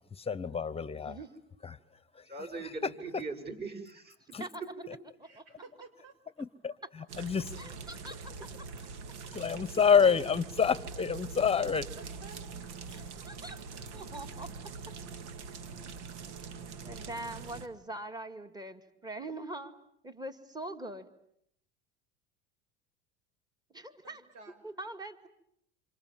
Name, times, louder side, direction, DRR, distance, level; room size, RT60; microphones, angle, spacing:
voice 1, 0.1-1.2 1.6-1.8 2.1-2.3 4.3-4.4 6.4-7.4 9.3-11.9, left 6 dB, 15° left, 18 dB, 1.2 m, -28 dB
voice 2, 2.2-4.2 4.6-4.7 9.3-9.5, right 3 dB, 30° right, 5 dB, 7.1 m, -41 dB
voice 3, 5.2-6.1 8.8-8.9 11.7-12.8 24.0-24.6, right 3 dB, 65° right, 10 dB, 6.4 m, -53 dB
sound 1, 7.1-17.7, right 5 dB, 80° right, 2.1 m, -44 dB
voice 4, 7.6-8.3 12.9-13.6 13.9-14.5 16.9-19.8 20.0-21.1 23.7-24.2 24.6-25.3, right 2 dB, 10° right, 8 dB, 2.2 m, -42 dB
28.0 x 27.0 x 7.6 m, 0.73 s
supercardioid pair, 110°, 35 cm